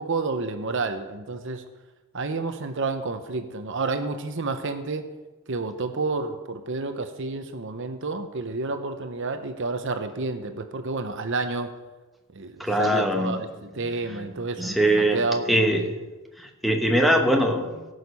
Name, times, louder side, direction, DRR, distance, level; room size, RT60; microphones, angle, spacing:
voice 1, 0.0-1.6 2.1-5.1 5.5-11.7 12.3-15.9, right 3 dB, 55° right, 8 dB, 0.8 m, -30 dB
voice 2, 12.6-13.5 14.1-15.9 16.4-17.8, right 1 dB, ahead, 2 dB, 1.0 m, -23 dB
17.5 x 6.6 x 5.4 m, 1.2 s
head